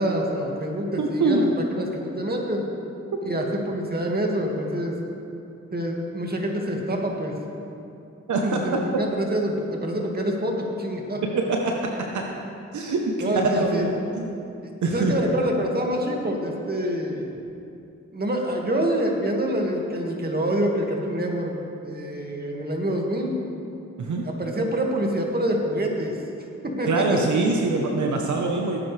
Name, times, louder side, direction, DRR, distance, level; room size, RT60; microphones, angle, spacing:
voice 1, 0.0-2.7 3.2-4.9 5.7-7.3 8.4-11.2 13.2-13.9 14.9-17.3 18.1-21.5 21.8-23.3 24.2-26.1 26.6-27.0, right 1 dB, 30° right, 0 dB, 2.2 m, -26 dB
voice 2, 1.0-1.4 8.3-8.6 11.3-12.2 12.7-14.4 14.8-15.1 24.0-24.2 26.9-28.8, right 3 dB, 75° right, 1 dB, 1.1 m, -24 dB
17.5 x 9.8 x 3.4 m, 2.7 s
cardioid pair, 55°, 30 cm